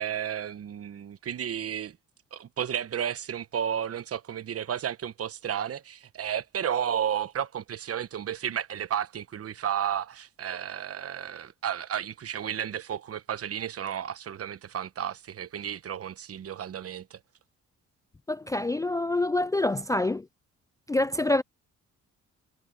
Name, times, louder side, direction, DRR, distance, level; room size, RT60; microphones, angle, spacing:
voice 1, 0.0-2.0 2.3-17.2, right 9 dB, 50° right, 1.1 m, -32 dB
voice 2, 18.3-20.3 20.9-21.4, left 2 dB, 10° left, 0.4 m, -26 dB
cardioid pair, 90°, 30 cm